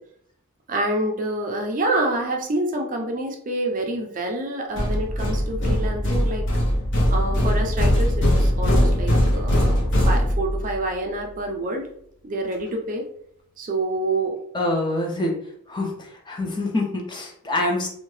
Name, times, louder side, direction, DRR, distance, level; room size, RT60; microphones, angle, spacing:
voice 1, 0.7-6.4 7.1-11.9 12.2-13.0 13.6-14.4, right 2 dB, 35° right, 2 dB, 0.4 m, -27 dB
sound 1, 4.8-10.8, equal, 55° left, 0.7 m, -20 dB
voice 2, 14.5-15.3 15.7-17.9, left 2 dB, 20° left, 1 dB, 0.4 m, -25 dB
2.7 x 2.2 x 3.1 m, 0.69 s
head